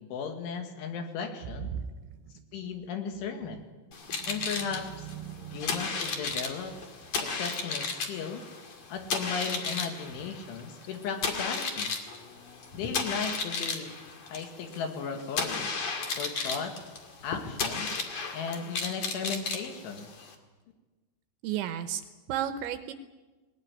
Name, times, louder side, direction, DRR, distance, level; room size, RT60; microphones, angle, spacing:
voice 1, 0.0-1.7 2.5-3.6 4.3-5.1 5.5-6.7 7.2-8.4 8.9-11.9 12.7-13.9 14.3-15.7 16.2-16.8 17.2-17.9 18.3-20.1, left 6 dB, 70° left, 5 dB, 4.3 m, -36 dB
voice 2, 1.5-2.2 3.4-3.6 4.1-5.8 21.4-22.9, right 10 dB, 75° right, 9 dB, 2.9 m, -36 dB
sound 1, 3.9-20.3, left 4 dB, 45° left, 2.5 m, -34 dB
20.0 x 20.0 x 9.8 m, 1.3 s
omnidirectional pair, 5.9 m